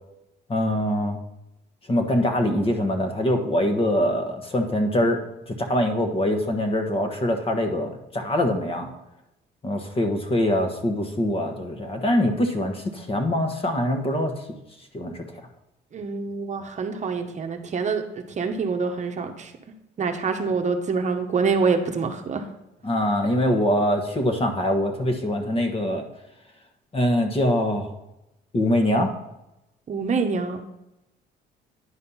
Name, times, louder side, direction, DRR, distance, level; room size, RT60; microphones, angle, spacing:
voice 1, 0.5-1.2 1.9-5.2 5.5-8.9 9.6-14.3 14.9-15.2 22.8-26.1 26.9-27.9 28.5-29.1, left 1 dB, 30° left, 5 dB, 1.3 m, -23 dB
voice 2, 15.9-19.5 20.0-22.4 29.9-30.6, right 5 dB, 40° right, 5 dB, 0.9 m, -26 dB
9.9 x 4.2 x 5.6 m, 0.91 s
cardioid pair, 105°, 19 cm